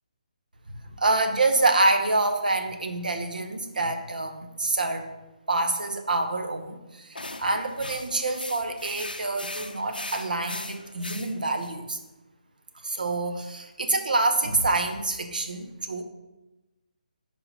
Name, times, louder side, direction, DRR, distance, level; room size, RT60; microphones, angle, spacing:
voice 1, 1.0-5.1 5.5-12.0 12.8-16.0, right 2 dB, 70° right, 6 dB, 0.8 m, -26 dB
sound 1, 7.1-11.7, left 2 dB, 85° left, 0.5 m, -39 dB
5.7 x 4.6 x 4.0 m, 1.0 s
figure-of-eight pair, 150°, 5 cm